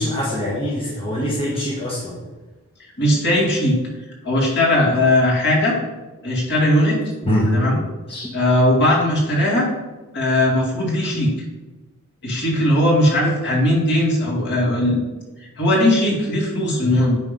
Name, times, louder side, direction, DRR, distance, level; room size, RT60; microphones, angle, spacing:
voice 1, 0.0-2.2 7.2-7.5 8.1-8.3, equal, 25° left, -6 dB, 1.3 m, -23 dB
voice 2, 3.0-3.8 4.2-5.7 6.2-7.0 7.5-7.8 8.3-9.7 10.1-11.3 12.2-15.0 15.6-17.2, left 1 dB, 50° left, -4 dB, 2.4 m, -18 dB
9.6 x 3.5 x 5.2 m, 1.2 s
head